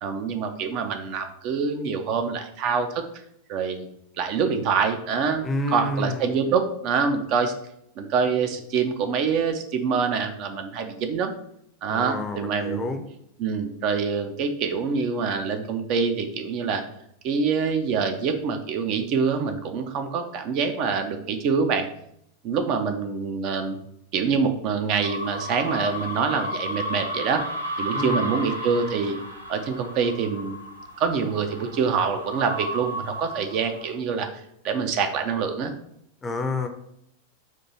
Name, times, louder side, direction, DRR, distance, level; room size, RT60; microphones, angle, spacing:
voice 1, 0.0-3.0 3.5-3.9 4.2-7.5 8.0-11.3 11.8-12.9 13.4-16.8 17.2-21.9 22.4-23.8 24.1-27.4 27.8-29.2 29.5-30.6 31.0-35.7, right 5 dB, 40° right, 6 dB, 0.5 m, -25 dB
voice 2, 5.4-6.3 11.9-13.0 27.9-28.3 36.2-36.7, left 2 dB, 15° left, 6 dB, 0.6 m, -29 dB
sound 1, 25.0-33.9, equal, 80° right, 0.8 m, -33 dB
4.4 x 2.6 x 4.3 m, 0.72 s
figure-of-eight pair, 90°, 0 cm